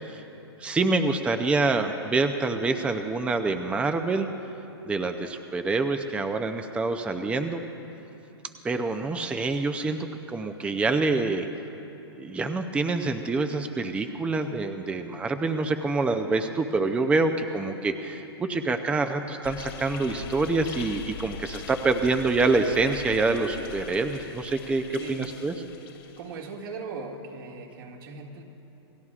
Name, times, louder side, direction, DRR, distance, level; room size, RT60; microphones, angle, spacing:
voice 1, 0.6-4.3 4.8-7.6 8.6-11.5 12.2-25.5, right 3 dB, 10° right, 7 dB, 0.6 m, -26 dB
sound 1, 19.4-26.5, left 7 dB, 65° left, 2.1 m, -41 dB
voice 2, 25.0-25.4 25.8-28.4, right 4 dB, 55° right, 0 dB, 2.1 m, -39 dB
28.0 x 18.0 x 2.4 m, 3.0 s
hypercardioid pair, 130°, 14 cm